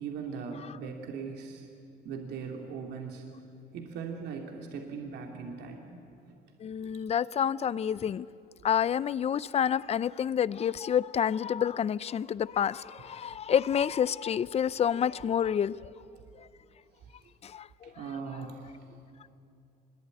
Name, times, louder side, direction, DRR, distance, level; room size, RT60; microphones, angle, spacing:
voice 1, 0.0-1.7 2.0-3.3 3.7-6.0 17.0-17.3 17.8-19.0, right 5 dB, 80° right, 2 dB, 2.9 m, -40 dB
voice 2, 6.6-8.3 8.6-15.7 17.4-17.9, left 8 dB, 40° left, 19 dB, 0.6 m, -28 dB
25.0 x 21.5 x 9.8 m, 2.5 s
cardioid pair, 110°, 17 cm